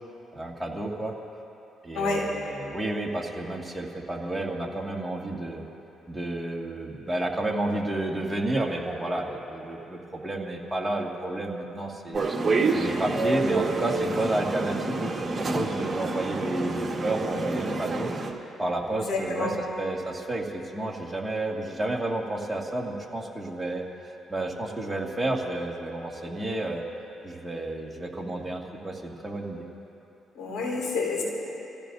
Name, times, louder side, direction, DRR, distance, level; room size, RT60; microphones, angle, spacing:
voice 1, 0.3-1.1 1.8-5.7 6.1-12.3 12.7-18.1 18.6-26.8 27.2-29.6, right 1 dB, 10° right, -3 dB, 2.3 m, -31 dB
voice 2, 1.9-2.3 18.9-19.5 30.4-31.2, left 3 dB, 85° left, -3 dB, 4.2 m, -28 dB
sound 1, 12.1-18.3, right 3 dB, 30° right, 1.8 m, -28 dB
28.5 x 16.0 x 2.8 m, 3.0 s
cardioid pair, 90°, 0 cm